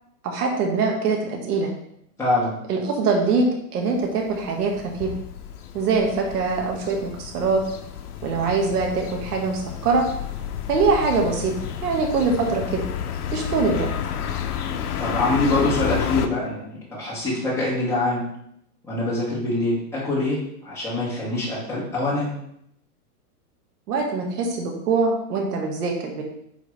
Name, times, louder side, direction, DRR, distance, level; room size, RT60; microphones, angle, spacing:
voice 1, 0.2-1.7 2.7-3.4 3.7-5.1 5.7-7.6 8.2-10.0 10.7-11.5 11.8-12.8 13.3-13.9 23.9-26.2, right 4 dB, 75° right, 1 dB, 1.6 m, -23 dB
voice 2, 2.2-2.6 15.0-18.2 18.8-22.3, left 2 dB, 5° left, -7 dB, 2.1 m, -24 dB
sound 1, 4.3-16.3, left 9 dB, 70° left, 0.8 m, -31 dB
9.2 x 3.6 x 3.4 m, 0.74 s
hypercardioid pair, 155°, 47 cm